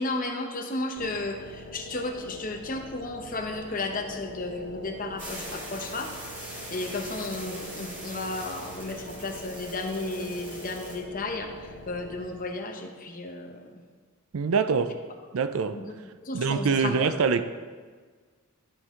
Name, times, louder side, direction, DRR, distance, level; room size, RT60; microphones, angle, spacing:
voice 1, 0.0-6.1 6.5-13.8 15.7-15.8 16.2-17.1, left 2 dB, 40° left, 3 dB, 0.8 m, -33 dB
sound 1, 1.0-12.7, left 1 dB, 90° left, 0.8 m, -44 dB
sound 2, 5.2-10.9, right 1 dB, 35° right, 2.2 m, -42 dB
voice 2, 14.3-15.0 15.3-15.8 16.3-17.4, right 5 dB, 70° right, 11 dB, 0.4 m, -24 dB
12.0 x 5.4 x 3.7 m, 1.5 s
head